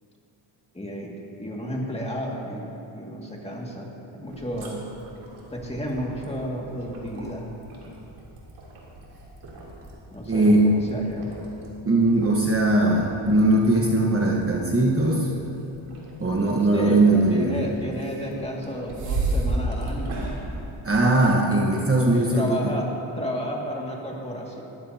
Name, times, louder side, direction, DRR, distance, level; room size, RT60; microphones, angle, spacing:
voice 1, 0.7-4.8 5.5-7.4 10.1-11.3 16.7-20.2 22.0-22.9 23.2-24.6, equal, 10° left, -2 dB, 2.1 m, -32 dB
sound 1, 4.3-21.5, right 2 dB, 80° right, 3.2 m, -36 dB
voice 2, 10.3-10.7 11.8-15.3 16.2-17.6 20.8-22.7, right 2 dB, 25° right, -2 dB, 1.4 m, -20 dB
19.5 x 14.5 x 2.8 m, 2.8 s
cardioid pair, 110°, 49 cm